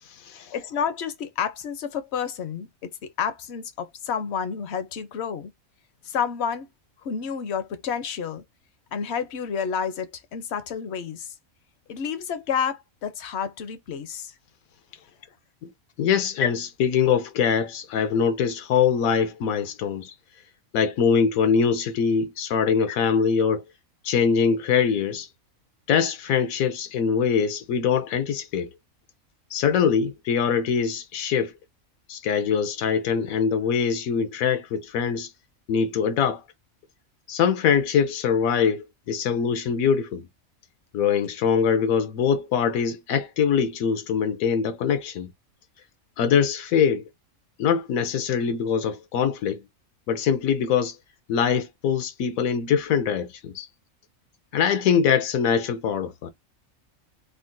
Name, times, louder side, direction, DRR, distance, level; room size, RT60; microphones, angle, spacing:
voice 1, 0.3-5.5 6.0-6.7 7.0-8.4 8.9-11.3 11.9-14.3 16.4-16.5 22.9-23.0, left 7 dB, 60° left, 0.8 m, -30 dB
voice 2, 16.0-20.1 20.7-23.6 24.0-25.3 25.9-28.7 29.5-31.5 32.1-35.3 35.7-36.4 37.3-40.2 40.9-45.3 46.2-47.1 47.6-49.6 50.1-50.9 51.3-53.7 54.5-56.3, left 7 dB, 80° left, 1.0 m, -23 dB
3.7 x 2.1 x 2.5 m
omnidirectional pair, 1.4 m